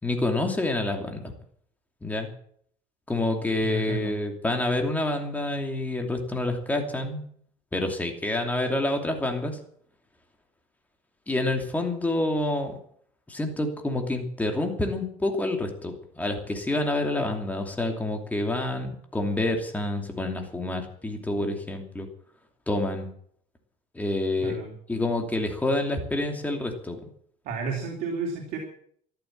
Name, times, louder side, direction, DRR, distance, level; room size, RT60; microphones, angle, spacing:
voice 1, 0.0-1.3 2.0-2.3 3.1-7.3 7.7-9.6 11.3-12.8 13.3-22.1 22.7-23.1 23.9-24.6 24.9-27.0, left 2 dB, 10° left, 4 dB, 2.8 m, -28 dB
voice 2, 3.6-4.1 24.4-24.7 27.4-28.6, right 4 dB, 65° right, 1 dB, 3.5 m, -32 dB
14.0 x 11.5 x 7.5 m, 0.63 s
cardioid pair, 135°, 16 cm